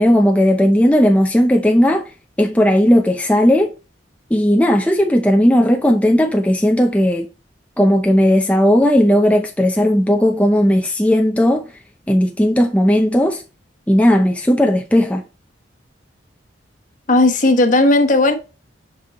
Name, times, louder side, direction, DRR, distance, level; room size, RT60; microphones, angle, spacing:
voice 1, 0.0-2.0 2.4-3.7 4.3-7.3 7.8-11.7 12.1-13.4 13.9-15.2, equal, 5° left, 0.6 m, -15 dB
voice 2, 17.1-18.3, left 2 dB, 45° left, 1.0 m, -14 dB
6.6 x 5.4 x 3.0 m
head